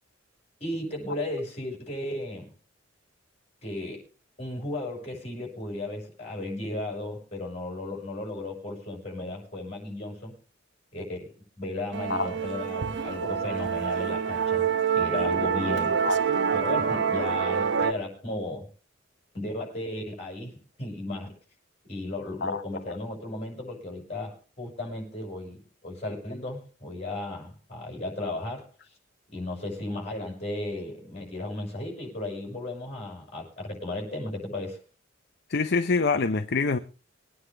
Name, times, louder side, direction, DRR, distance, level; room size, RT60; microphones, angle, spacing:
voice 1, 0.6-2.5 3.6-4.0 4.4-10.4 10.9-14.7 14.9-16.0 16.5-18.7 19.3-21.3 21.9-28.7 29.3-34.8, left 2 dB, 35° left, 6.3 m, -35 dB
Musical instrument, 11.9-17.9, right 7 dB, 65° right, 0.8 m, -26 dB
voice 2, 35.5-36.8, left 4 dB, 55° left, 0.7 m, -25 dB
22.0 x 9.6 x 3.3 m
head